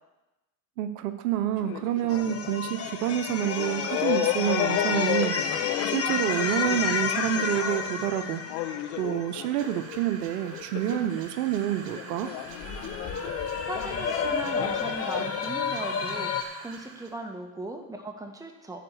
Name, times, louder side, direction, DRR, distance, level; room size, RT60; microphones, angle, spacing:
voice 1, 0.8-12.3, right 12 dB, 85° right, 10 dB, 0.8 m, -28 dB
sound 1, 1.6-10.0 10.4-11.4 11.7-15.5, left 11 dB, 75° left, 0.9 m, -33 dB
sound 2, 2.1-10.0 12.4-16.4, left 6 dB, 30° left, 1.2 m, -31 dB
sound 3, 9.6-17.2, right 4 dB, 50° right, 2.3 m, -45 dB
voice 2, 13.6-18.8, right 1 dB, 10° right, 2 dB, 1.7 m, -38 dB
11.0 x 5.0 x 7.8 m, 1.0 s
hypercardioid pair, 85°, 45 cm